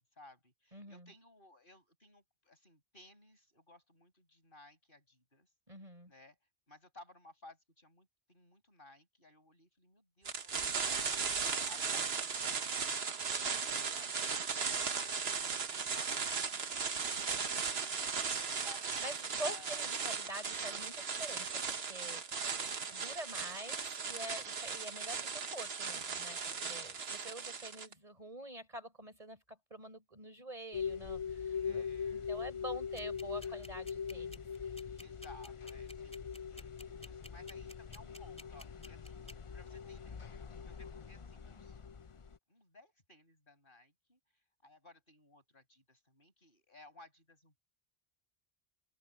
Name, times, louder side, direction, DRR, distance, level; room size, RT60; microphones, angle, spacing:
voice 1, 0.0-5.5 6.1-6.4 6.7-13.2 13.6-15.1 15.4-18.9 19.4-20.0 26.4-27.8 31.6-32.4 35.0-39.2 39.5-41.8 42.5-44.2 44.6-47.6, left 2 dB, 55° left, 6.6 m, -60 dB
voice 2, 0.7-1.1 5.7-6.1 19.0-34.7, right 1 dB, 35° right, 4.4 m, -47 dB
sound 1, 10.2-27.9, right 5 dB, 75° right, 1.5 m, -37 dB
sound 2, 30.7-42.4, left 6 dB, 35° left, 0.6 m, -42 dB
sound 3, 33.0-39.3, left 1 dB, 5° left, 2.7 m, -52 dB
open air
omnidirectional pair, 1.1 m